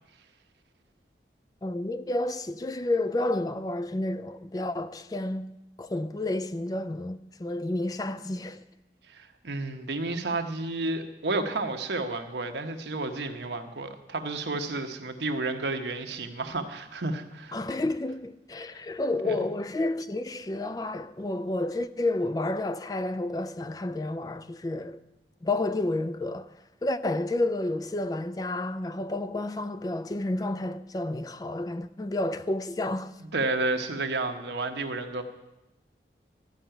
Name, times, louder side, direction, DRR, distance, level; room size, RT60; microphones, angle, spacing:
voice 1, 1.6-8.6 17.5-25.0 25.4-26.5 26.8-33.1, left 2 dB, 20° left, 0.3 m, -30 dB
voice 2, 9.1-17.6 19.2-19.5 33.2-35.2, right 2 dB, 80° right, 1.1 m, -31 dB
13.0 x 5.8 x 9.0 m
head